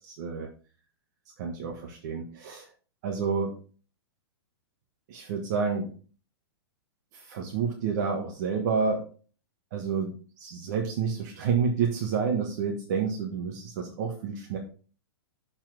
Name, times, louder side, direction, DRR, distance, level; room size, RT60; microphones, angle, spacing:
voice 1, 0.0-0.5 1.4-2.7 3.0-3.6 5.1-5.9 7.1-9.0 9.7-14.6, right 5 dB, 45° right, 1 dB, 1.3 m, -29 dB
7.1 x 4.3 x 5.9 m, 0.39 s
hypercardioid pair, 160°, 13 cm